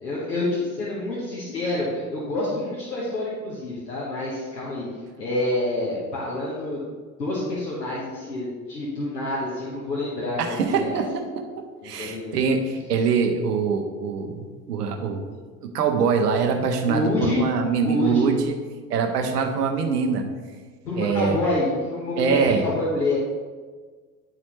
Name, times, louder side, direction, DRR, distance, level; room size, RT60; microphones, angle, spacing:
voice 1, 0.0-4.9 5.2-6.8 7.2-11.0 11.8-12.4 16.9-17.4 17.8-18.3 20.8-23.2, left 2 dB, 85° left, -6 dB, 1.3 m, -27 dB
voice 2, 10.4-11.4 11.8-15.2 15.6-18.6 18.9-20.2 21.0-21.4 22.2-22.6, right 5 dB, 75° right, 4 dB, 1.0 m, -23 dB
10.5 x 4.1 x 3.2 m, 1.5 s
figure-of-eight pair, 70°, 48 cm